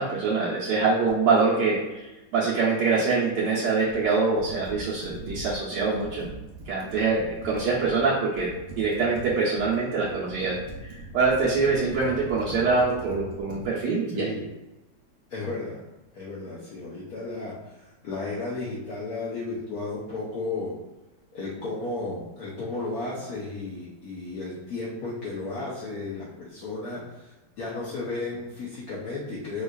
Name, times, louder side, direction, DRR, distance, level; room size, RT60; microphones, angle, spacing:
voice 1, 0.0-6.3 6.7-8.5 8.8-10.6 10.8-14.3, right 4 dB, 75° right, -8 dB, 1.3 m, -24 dB
Computer keyboard, 3.9-8.0 8.3-13.7, right 1 dB, 55° right, 0.8 m, -41 dB
voice 2, 14.1-14.4 15.3-15.8 16.1-20.7 21.3-29.6, left 3 dB, 65° left, -6 dB, 1.0 m, -34 dB
4.5 x 2.4 x 2.3 m, 1.0 s
omnidirectional pair, 1.9 m